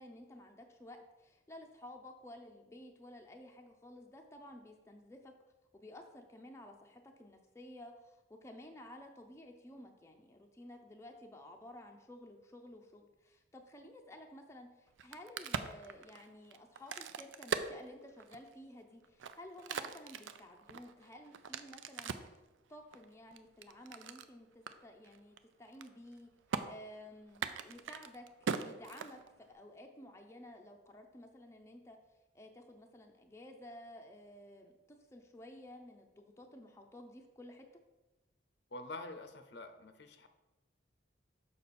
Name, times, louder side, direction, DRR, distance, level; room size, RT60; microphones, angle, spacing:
voice 1, 0.0-5.3 5.7-22.4 22.7-26.3 26.7-32.0 32.3-37.7, left 1 dB, 15° left, 3 dB, 0.5 m, -53 dB
Crack, 14.9-18.5 19.0-22.4 22.9-24.3 24.7-24.8 25.0-25.4 25.6-26.2 26.5-26.6 27.3-29.5, right 6 dB, 80° right, 0.4 m, -40 dB
voice 2, 38.7-40.3, left 2 dB, 60° left, 8 dB, 0.6 m, -46 dB
6.8 x 5.0 x 4.2 m, 1.0 s
head